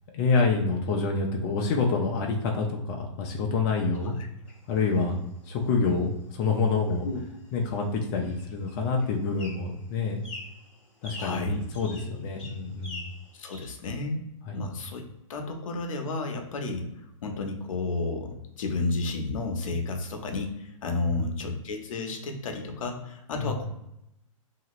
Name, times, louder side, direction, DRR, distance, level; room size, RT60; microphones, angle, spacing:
voice 1, 0.1-4.2 4.7-7.1 7.5-10.2 11.0-13.1 14.5-14.7 21.1-21.2 23.4-23.5, left 4 dB, 35° left, 1 dB, 0.5 m, -27 dB
sound 1, 4.5-13.7, left 2 dB, 5° left, 1.2 m, -48 dB
voice 2, 11.2-11.6 13.3-15.0 15.3-16.9 17.2-23.7, left 3 dB, 70° left, 4 dB, 0.7 m, -32 dB
2.8 x 2.5 x 3.0 m, 0.85 s
hypercardioid pair, 140°, 17 cm